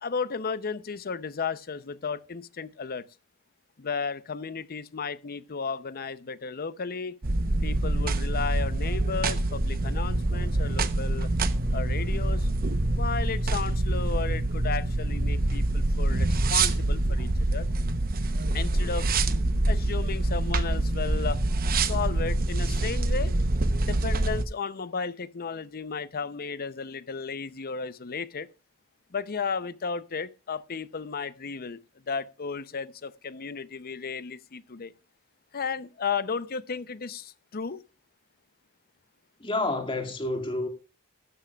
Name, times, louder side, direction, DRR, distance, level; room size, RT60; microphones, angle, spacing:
voice 1, 0.0-3.0 3.8-7.2 7.6-11.3 11.7-12.5 12.9-17.7 18.5-19.1 19.7-21.4 21.7-23.3 23.8-28.5 29.1-31.8 32.1-34.9 35.5-37.8, left 5 dB, 45° left, 0.7 m, -34 dB
sound 1, 7.2-24.4, right 2 dB, 45° right, 0.9 m, -26 dB
voice 2, 39.4-40.7, left 2 dB, 25° left, 2.2 m, -29 dB
15.0 x 12.5 x 2.4 m
head